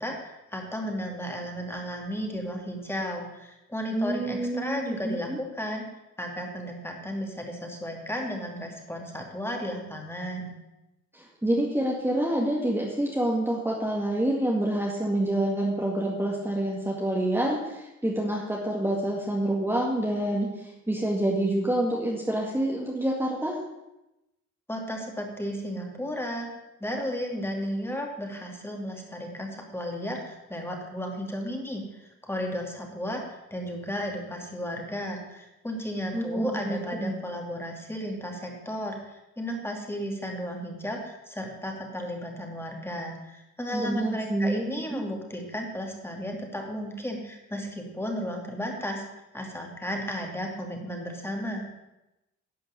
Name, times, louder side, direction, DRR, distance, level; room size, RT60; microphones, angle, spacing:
voice 1, 0.0-5.8 6.2-10.5 24.7-26.5 26.8-49.0 49.3-51.7, equal, 10° left, 1 dB, 2.6 m, -34 dB
voice 2, 3.9-5.4 11.1-23.6 36.1-37.2 43.7-45.0, right 1 dB, 10° right, -3 dB, 2.1 m, -27 dB
11.5 x 5.1 x 8.5 m, 0.94 s
cardioid pair, 90°, 30 cm